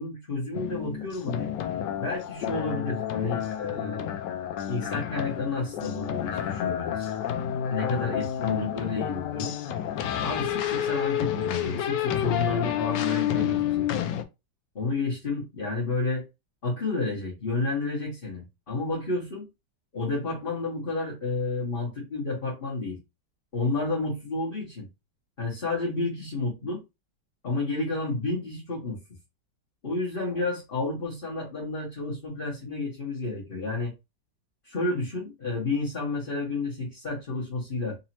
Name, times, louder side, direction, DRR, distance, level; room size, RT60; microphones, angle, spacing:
voice 1, 0.0-1.5 1.9-4.1 4.7-7.1 7.7-9.5 10.2-13.9 14.7-16.3 16.6-19.5 19.9-23.0 23.5-24.9 25.4-26.8 27.4-29.0 29.8-33.9 34.6-38.0, left 3 dB, 30° left, 1.5 m, -31 dB
sound 1, 0.5-14.2, left 10 dB, 80° left, 1.2 m, -30 dB
4.0 x 3.0 x 2.8 m
omnidirectional pair, 1.9 m